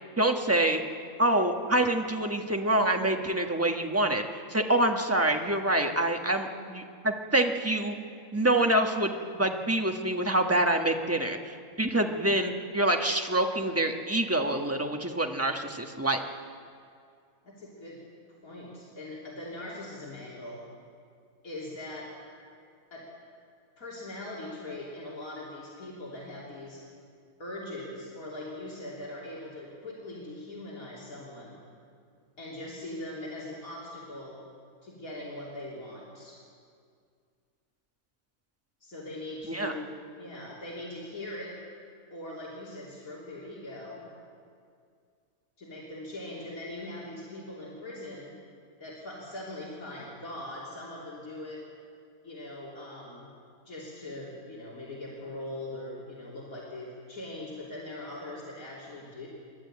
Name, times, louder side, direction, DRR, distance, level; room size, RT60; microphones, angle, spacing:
voice 1, 0.2-0.8 1.2-4.2 4.5-7.9 8.3-16.2 39.5-39.7, right 1 dB, 10° right, 3 dB, 1.3 m, -26 dB
voice 2, 17.4-18.0 18.4-20.6 21.4-22.1 22.9-23.1 23.8-26.8 27.4-31.6 32.4-34.4 34.8-36.4 38.8-41.6 42.1-44.0 45.6-48.4 48.8-51.6 52.2-53.3 53.7-59.3, left 1 dB, 80° left, -5 dB, 3.6 m, -41 dB
29.0 x 11.5 x 8.8 m, 2.2 s
omnidirectional pair, 1.5 m